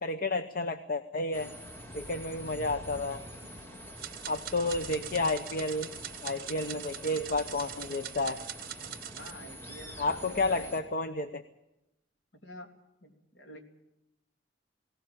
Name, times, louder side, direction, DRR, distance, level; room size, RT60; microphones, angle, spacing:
voice 1, 0.0-1.5 1.9-3.2 4.3-5.9 6.2-8.4 10.0-11.4, left 2 dB, 50° left, 8 dB, 0.8 m, -31 dB
sound 1, 1.3-10.8, equal, 15° left, 3.2 m, -45 dB
sound 2, 4.0-9.3, right 11 dB, 55° right, 0.8 m, -43 dB
voice 2, 9.2-10.7 12.3-12.7 13.0-13.6, equal, 70° left, 3 dB, 3.0 m, -49 dB
19.0 x 18.0 x 8.5 m, 0.90 s
head